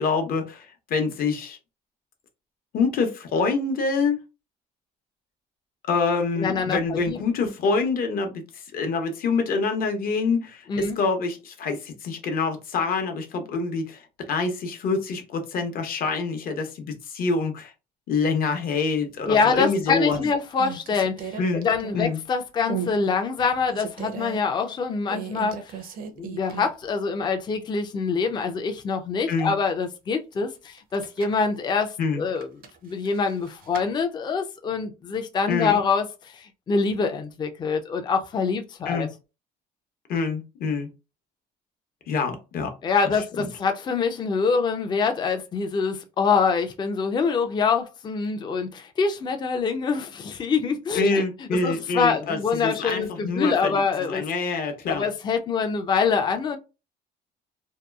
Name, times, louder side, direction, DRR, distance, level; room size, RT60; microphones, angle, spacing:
voice 1, 0.0-1.6 2.7-4.2 5.9-17.7 18.1-20.2 21.4-21.7 21.9-22.2 29.3-29.5 32.0-32.2 35.5-35.8 38.9-39.1 40.1-40.9 42.1-42.7 43.4-43.5 50.9-55.0, left 4 dB, 60° left, 0.8 m, -26 dB
voice 2, 6.4-7.2 10.7-11.0 19.3-25.7 26.1-32.5 32.8-39.1 42.8-51.2 51.5-54.2 54.9-56.6, left 5 dB, 25° left, 0.4 m, -25 dB
sound 1, 19.3-19.7 20.1-22.2 22.7-23.0 23.4-24.4 25.1-26.9 27.2-27.3 30.8-31.5 32.4-33.9, right 8 dB, 60° right, 0.5 m, -36 dB
2.8 x 2.2 x 2.3 m
cardioid pair, 110°, 17 cm